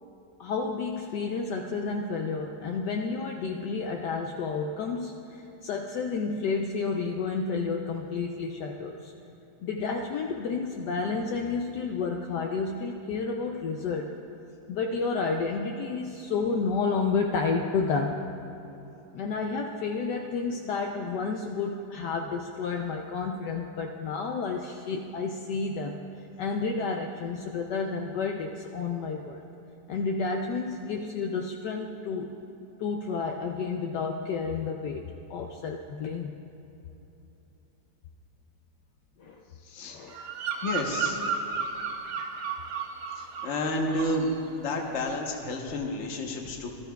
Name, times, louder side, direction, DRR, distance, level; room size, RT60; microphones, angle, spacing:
voice 1, 0.4-9.1 9.6-14.1 14.7-18.2 19.1-26.0 26.4-29.4 29.9-32.3 32.8-35.0 35.3-36.3 39.2-39.4 39.9-40.2, left 4 dB, 70° left, 2 dB, 1.1 m, -31 dB
Bird vocalization bird call bird song, 40.1-43.6 43.9-44.3, right 5 dB, 60° right, 1.0 m, -33 dB
voice 2, 40.6-41.2 43.4-44.3 44.5-46.7, left 2 dB, 45° left, 2 dB, 1.1 m, -30 dB
18.5 x 13.0 x 2.3 m, 3.0 s
omnidirectional pair, 2.0 m